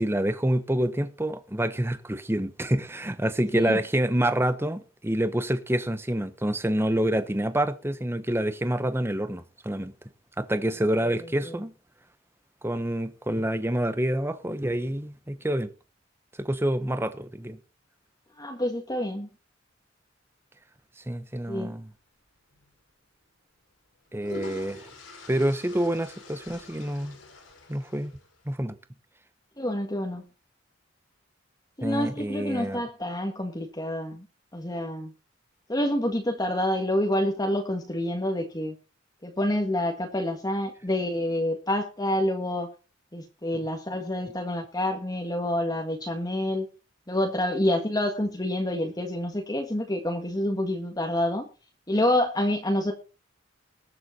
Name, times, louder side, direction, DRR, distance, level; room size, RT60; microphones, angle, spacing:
voice 1, 0.0-9.9 10.4-11.7 12.6-15.7 16.4-17.6 21.1-21.9 24.1-24.9 25.3-27.2 27.7-28.1 28.5-28.8 31.8-32.8, right 1 dB, 10° right, 1.0 m, -27 dB
voice 2, 18.4-19.3 21.5-21.7 29.6-30.2 31.8-34.3 34.5-35.1 35.7-38.7 39.2-42.7 43.1-46.7 47.1-51.4 51.9-52.9, left 1 dB, 20° left, 1.7 m, -27 dB
sound 1, 22.5-22.7 23.8-28.5, left 2 dB, 80° left, 5.4 m, -45 dB
20.5 x 7.8 x 4.2 m
head